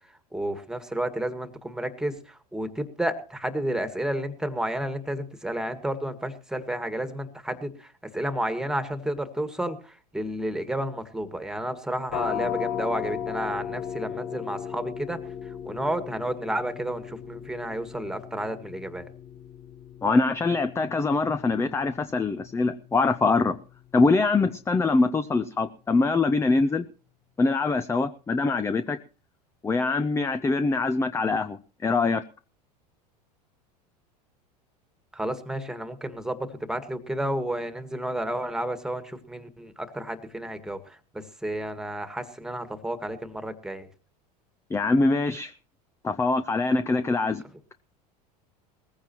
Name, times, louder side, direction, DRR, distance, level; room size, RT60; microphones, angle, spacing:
voice 1, 0.3-19.1 35.1-43.9, right 1 dB, 5° right, 10 dB, 1.8 m, -31 dB
sound 1, 12.1-23.6, left 8 dB, 50° left, 1.1 m, -37 dB
voice 2, 20.0-23.6 23.9-26.9 27.4-29.0 29.6-32.2 44.7-45.5 46.0-47.4, left 3 dB, 15° left, 12 dB, 0.6 m, -23 dB
19.5 x 15.0 x 3.0 m, 0.37 s
hypercardioid pair, 90°, 21 cm